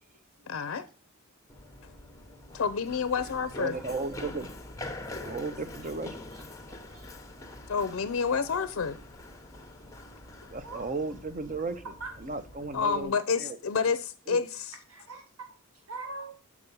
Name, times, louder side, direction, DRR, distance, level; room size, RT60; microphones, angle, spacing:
voice 1, 0.5-0.9 2.5-3.8 7.7-9.0 12.7-14.8, left 5 dB, 65° left, 0.5 m, -29 dB
Run, 1.5-13.0, left 1 dB, 15° left, 0.8 m, -45 dB
voice 2, 3.6-4.5 5.2-6.2 10.5-11.8 12.2-13.6 14.3-14.4, right 3 dB, 35° right, 0.6 m, -35 dB
voice 3, 6.3-7.1 10.6-10.9 12.0-12.1 14.9-15.2 15.9-16.4, right 3 dB, 85° right, 1.0 m, -42 dB
7.0 x 4.8 x 5.3 m
head